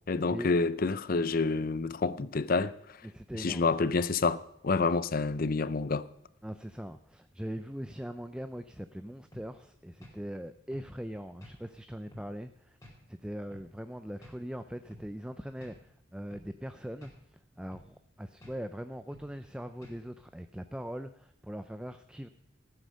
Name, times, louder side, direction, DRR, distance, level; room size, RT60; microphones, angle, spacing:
voice 1, 0.1-3.0 3.4-6.1, left 4 dB, 50° left, 0.6 m, -28 dB
voice 2, 3.0-3.8 6.4-12.8 13.1-22.3, equal, 5° right, 0.4 m, -41 dB
sound 1, 9.3-9.5 10.0-10.2 10.7-10.9 11.4-11.6 12.1-12.3 12.8-13.0 13.5-13.7 14.2-14.4 14.9-15.1 15.6-15.8 16.3-16.5 17.0-17.2 17.7-17.9 18.4-18.6 19.1-19.3 19.8-20.0, equal, 20° left, 4.6 m, -52 dB
15.5 x 9.4 x 6.5 m
head